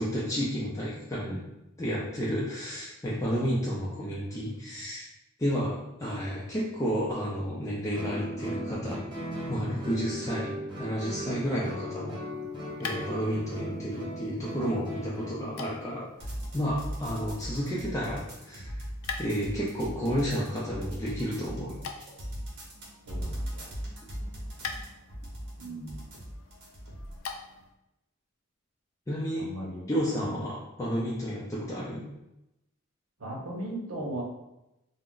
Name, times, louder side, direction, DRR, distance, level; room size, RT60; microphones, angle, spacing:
voice 1, 0.0-1.4 1.8-5.1 5.4-9.0 9.5-10.5 10.8-12.2 12.8-16.1 16.5-18.8 19.2-21.8 29.1-29.5 29.9-32.0, equal, 15° left, -7 dB, 0.4 m, -31 dB
Guitar, 7.9-15.4, equal, 20° right, 0.8 m, -38 dB
sound 1, 12.1-27.8, left 5 dB, 80° left, 0.4 m, -46 dB
sound 2, 16.2-27.2, equal, 55° right, 0.8 m, -39 dB
voice 2, 23.0-23.7 25.6-26.0 29.4-29.9 30.2-30.4 33.2-34.2, right 1 dB, 90° right, -2 dB, 0.8 m, -37 dB
2.4 x 2.1 x 3.7 m, 0.91 s
head